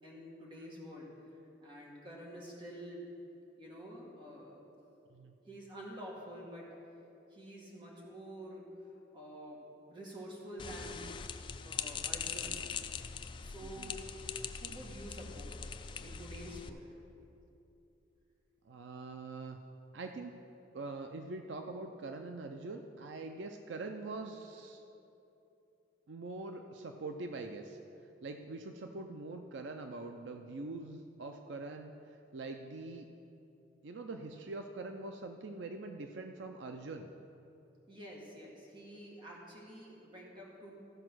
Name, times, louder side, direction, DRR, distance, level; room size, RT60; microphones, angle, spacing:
voice 1, 0.0-1.1 1.6-3.1 3.6-4.7 5.5-6.7 7.3-8.6 9.1-9.6 9.9-11.0 11.7-12.6 13.4-14.1 14.5-16.9 37.9-40.8, equal, 25° right, -4 dB, 1.9 m, -48 dB
sound 1, 10.6-16.7, left 6 dB, 25° left, 0.3 m, -42 dB
voice 2, 13.6-13.9 18.7-19.6 19.9-20.3 20.7-24.8 26.1-27.8 28.2-31.9 32.3-33.1 33.8-37.1, right 3 dB, 75° right, 5 dB, 0.5 m, -43 dB
15.0 x 5.0 x 6.2 m, 2.8 s
head